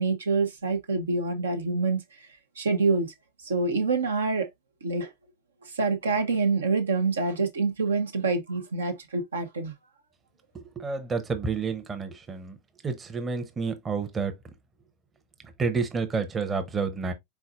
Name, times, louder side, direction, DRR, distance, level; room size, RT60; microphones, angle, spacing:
voice 1, 0.0-2.3 2.6-3.1 3.4-4.5 4.8-5.1 5.6-9.7, right 4 dB, 70° right, 0.8 m, -26 dB
voice 2, 10.5-12.6 12.8-14.3 15.6-17.1, right 4 dB, 20° right, 0.8 m, -29 dB
4.6 x 4.0 x 2.4 m
figure-of-eight pair, 90°, 0 cm